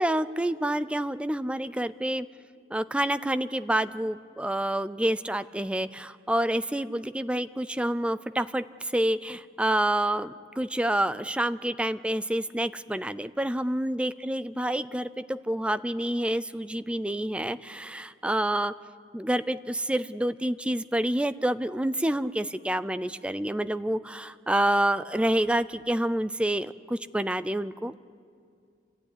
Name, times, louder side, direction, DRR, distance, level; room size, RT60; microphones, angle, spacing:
voice 1, 0.0-2.3 2.7-18.7 19.1-27.9, right 1 dB, 5° right, 13 dB, 0.5 m, -28 dB
28.0 x 13.0 x 9.7 m, 2.3 s
head